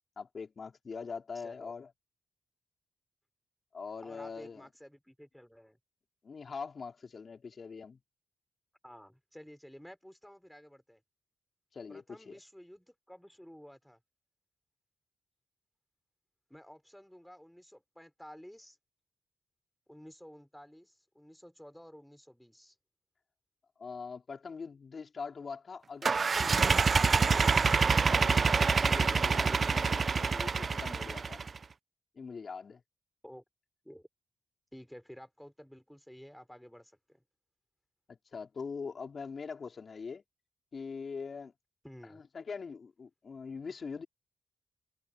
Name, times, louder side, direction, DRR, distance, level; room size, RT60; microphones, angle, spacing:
voice 1, 0.2-1.9 3.7-4.7 6.2-8.0 11.7-12.4 23.8-31.4 32.2-32.8 38.1-40.2 40.7-41.5 42.1-44.1, left 5 dB, 50° left, 4.1 m, -43 dB
voice 2, 1.3-1.7 4.0-5.8 8.8-11.0 11.9-14.0 16.5-18.8 19.9-22.7 33.2-33.4 33.8-34.1 34.7-37.2 41.8-42.2, equal, 5° left, 5.0 m, -52 dB
sound 1, 26.0-31.6, right 5 dB, 45° right, 0.3 m, -26 dB
cardioid pair, 85°, 0 cm